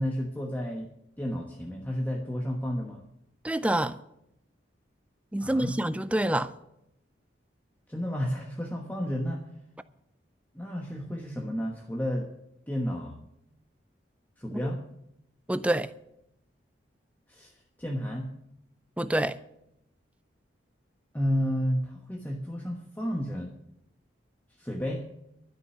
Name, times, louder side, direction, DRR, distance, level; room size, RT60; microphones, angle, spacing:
voice 1, 0.0-3.0 5.4-5.7 7.9-9.4 10.5-12.3 12.7-13.2 14.4-14.8 17.3-18.3 21.1-23.5 24.6-25.0, equal, 10° left, 1.2 m, -31 dB
voice 2, 3.4-4.0 5.3-6.5 14.5-14.7 15.5-15.9 19.0-19.4, right 1 dB, 5° right, 0.4 m, -27 dB
12.5 x 6.7 x 9.8 m
head